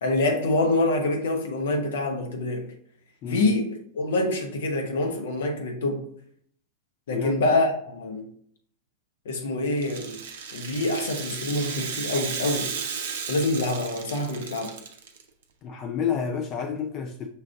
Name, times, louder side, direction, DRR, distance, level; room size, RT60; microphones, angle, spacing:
voice 1, 0.0-2.7 3.3-6.0 7.1-8.3 9.3-10.2 10.5-12.7 13.3-14.7, left 2 dB, 60° left, 0.8 m, -26 dB
Rattle (instrument), 9.7-15.2, right 6 dB, 60° right, 0.5 m, -34 dB
voice 2, 15.6-17.3, left 7 dB, 35° left, 0.4 m, -29 dB
5.7 x 2.5 x 3.5 m
figure-of-eight pair, 90°, 0 cm